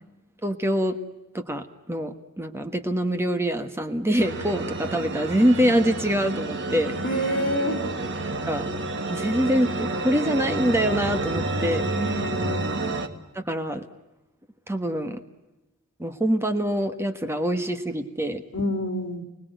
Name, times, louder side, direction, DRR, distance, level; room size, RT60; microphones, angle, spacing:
voice 1, 0.4-1.0 1.3-6.9 8.5-8.7 9.0-12.0 13.3-13.8 14.7-15.2 16.0-18.4, equal, 10° right, 7 dB, 1.5 m, -25 dB
sound 1, 4.2-13.1, right 2 dB, 55° right, 2.2 m, -29 dB
voice 2, 7.0-7.8 12.0-12.8 18.5-19.2, equal, 55° left, 2 dB, 4.0 m, -28 dB
29.5 x 20.0 x 9.4 m, 1.0 s
head